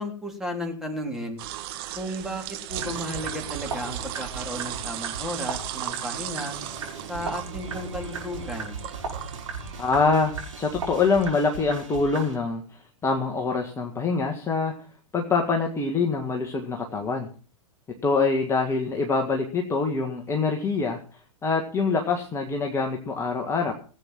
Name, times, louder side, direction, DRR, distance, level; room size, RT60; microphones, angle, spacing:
voice 1, 0.0-1.4 2.0-6.6 7.1-8.8, equal, ahead, 1 dB, 3.5 m, -34 dB
sound 1, 1.4-11.3, right 14 dB, 45° right, 1.4 m, -37 dB
sound 2, 2.7-12.4, right 4 dB, 70° right, 6.7 m, -37 dB
voice 2, 9.8-12.6 13.0-14.7 15.1-17.3 18.0-21.0 21.4-23.7, left 4 dB, 15° left, 2 dB, 1.8 m, -25 dB
18.5 x 8.4 x 6.2 m, 0.41 s
figure-of-eight pair, 100°, 17 cm